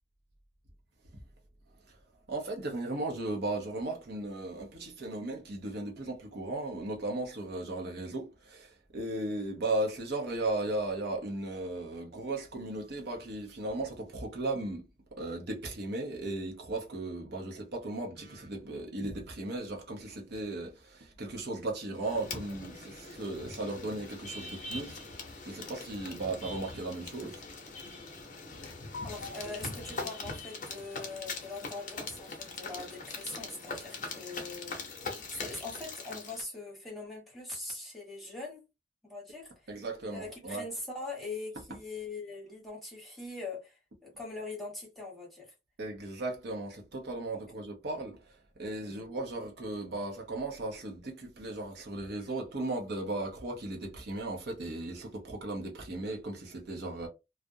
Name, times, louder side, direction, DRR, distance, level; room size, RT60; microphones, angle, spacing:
voice 1, 2.3-14.8 15.2-27.4 39.7-40.6 45.8-48.2 48.6-57.1, right 2 dB, 60° right, 0.7 m, -36 dB
sound 1, 22.0-36.4, left 3 dB, 45° left, 0.7 m, -42 dB
sound 2, 25.1-32.2, left 3 dB, 85° left, 0.6 m, -51 dB
voice 2, 29.0-34.9 35.3-38.6 39.0-39.8 40.1-45.5 47.3-47.5 48.8-49.0, left 3 dB, ahead, 1.0 m, -42 dB
2.3 x 2.0 x 2.6 m
head